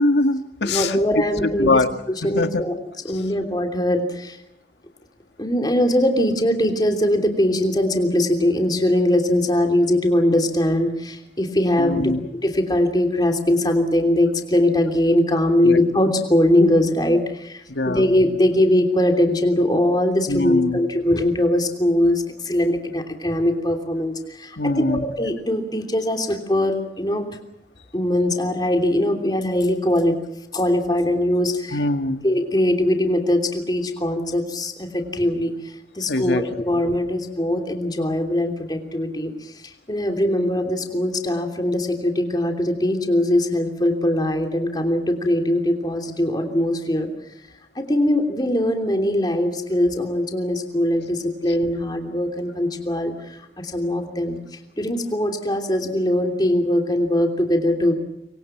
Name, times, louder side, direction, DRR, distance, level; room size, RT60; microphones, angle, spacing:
voice 1, 0.0-1.9 2.4-2.6 3.1-3.2 11.8-12.3 15.6-15.8 17.7-18.1 20.3-20.8 24.6-25.1 31.7-32.3 36.1-36.4 36.7-36.8, left 2 dB, 80° left, 8 dB, 1.8 m, -22 dB
voice 2, 0.6-1.8 2.2-2.7 3.1-4.4 5.4-12.1 12.4-27.3 27.9-30.1 30.5-31.8 32.2-35.5 35.9-39.3 39.6-47.1 47.7-54.4 54.8-57.9, left 1 dB, 25° left, 4 dB, 3.2 m, -21 dB
27.0 x 24.5 x 6.0 m, 0.83 s
head